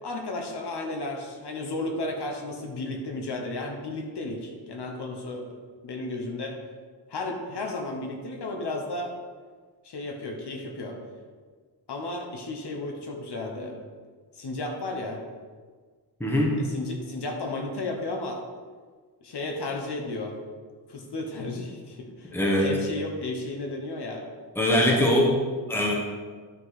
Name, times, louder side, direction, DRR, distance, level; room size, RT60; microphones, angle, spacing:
voice 1, 0.0-5.5 5.8-6.6 7.1-9.1 9.8-11.0 11.9-13.8 14.3-15.2 16.6-18.4 19.2-20.4 20.9-24.2 24.7-25.0, left 2 dB, 65° left, 2 dB, 1.2 m, -33 dB
voice 2, 16.2-16.6 22.3-22.8 24.5-25.3 25.7-25.9, left 1 dB, 5° left, -1 dB, 1.0 m, -22 dB
10.5 x 4.8 x 4.2 m, 1.6 s
wide cardioid pair, 180°, 43 cm